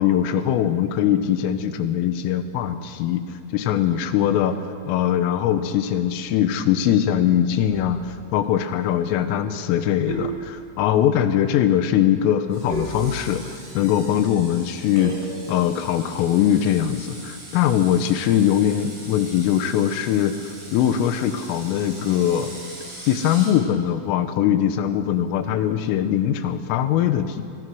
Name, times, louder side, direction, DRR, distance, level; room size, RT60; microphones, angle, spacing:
voice 1, 0.0-3.2 3.5-4.6 4.9-22.5 23.1-27.4, left 10 dB, 90° left, 9 dB, 3.8 m, -21 dB
sound 1, 7.7-8.2 10.1-11.0 12.7-13.6 15.0-15.7, right 2 dB, 70° right, 10.0 m, -33 dB
Screech, 12.5-23.5, right 1 dB, 50° right, 9.7 m, -42 dB
25.0 x 20.5 x 6.3 m, 2.3 s
omnidirectional pair, 5.7 m